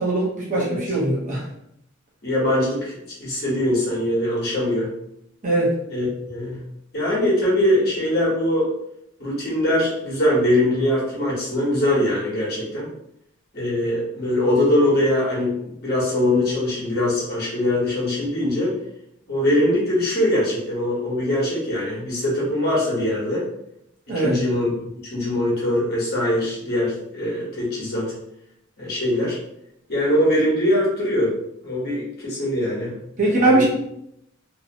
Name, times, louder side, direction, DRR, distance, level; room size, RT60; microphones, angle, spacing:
voice 1, 0.0-1.4 5.4-5.7 24.1-24.4 33.2-33.6, right 2 dB, 40° right, -4 dB, 0.7 m, -20 dB
voice 2, 2.2-4.9 5.9-6.6 6.9-8.7 9.2-12.9 13.5-18.7 19.3-23.4 24.2-24.7 25.1-28.1 28.8-29.4 29.9-31.3 31.6-32.9 33.2-33.6, left 1 dB, 50° left, -6 dB, 1.1 m, -22 dB
2.7 x 2.1 x 2.7 m, 0.78 s
head